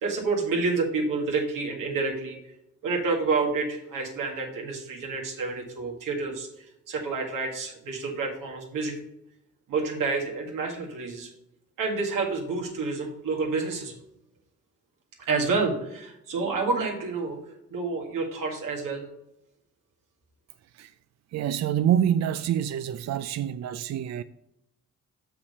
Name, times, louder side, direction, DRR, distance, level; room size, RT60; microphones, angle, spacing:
voice 1, 0.0-2.4 2.8-8.9 9.7-11.3 11.8-14.0 15.3-17.4 17.7-19.1, right 4 dB, 90° right, 1.8 m, -29 dB
voice 2, 21.3-24.2, right 10 dB, 60° right, 0.4 m, -26 dB
6.6 x 5.8 x 5.3 m
supercardioid pair, 60°, 31 cm